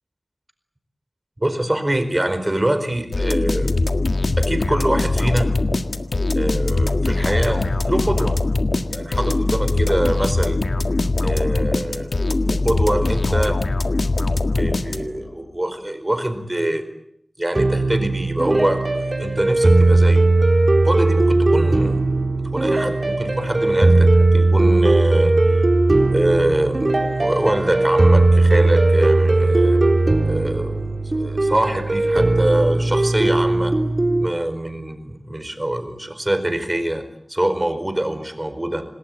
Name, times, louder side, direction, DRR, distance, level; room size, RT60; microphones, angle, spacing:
voice 1, 1.4-3.7 4.4-5.6 6.3-8.4 8.9-10.6 11.2-13.6 14.5-16.8 17.4-20.3 20.8-22.0 22.5-25.6 26.1-29.8 30.3-33.7 34.2-38.8, right 1 dB, 25° right, 9 dB, 4.5 m, -24 dB
sound 1, 3.1-15.3, left 2 dB, 75° left, 1.7 m, -21 dB
sound 2, 17.5-34.3, right 2 dB, 45° right, 3.5 m, -17 dB
27.5 x 19.5 x 9.3 m, 0.73 s
wide cardioid pair, 70°, 0 cm